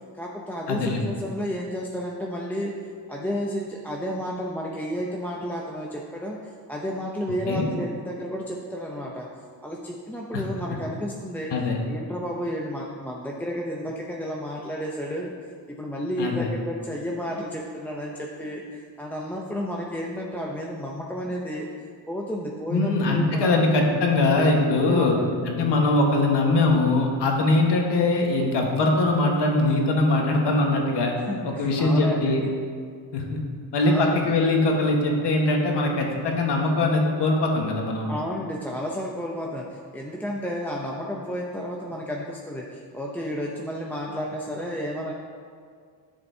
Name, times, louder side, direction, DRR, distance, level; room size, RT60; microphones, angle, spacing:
voice 1, 0.2-2.7 3.1-6.4 6.7-9.3 9.6-11.5 11.9-15.3 15.7-21.7 22.1-23.6 24.9-25.4 31.3-32.5 33.8-34.3 38.1-45.1, equal, 5° left, -3 dB, 0.6 m, -32 dB
voice 2, 0.7-1.1 7.5-7.7 10.3-10.4 11.5-11.8 16.2-16.5 22.7-25.2 25.4-31.1 31.4-32.4 33.1-33.4 33.7-38.1, left 2 dB, 65° left, 1 dB, 1.4 m, -22 dB
11.5 x 7.1 x 2.7 m, 2.1 s
cardioid pair, 120°, 45 cm